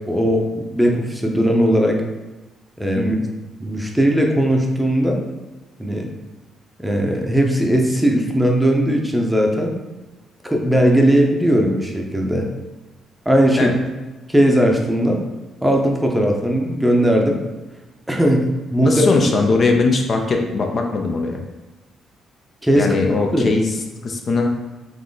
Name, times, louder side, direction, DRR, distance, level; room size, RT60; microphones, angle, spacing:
voice 1, 0.1-2.0 2.8-3.2 3.6-5.2 5.8-6.1 6.8-9.8 10.4-12.5 13.3-13.7 14.3-15.2 15.6-17.4 18.1-19.0 22.6-22.9 23.3-23.6, equal, 5° right, 1 dB, 0.7 m, -18 dB
voice 2, 18.8-21.4 22.7-23.8 24.0-24.5, left 3 dB, 45° left, 2 dB, 0.6 m, -19 dB
3.6 x 3.1 x 3.9 m, 1.1 s
cardioid pair, 90°, 0 cm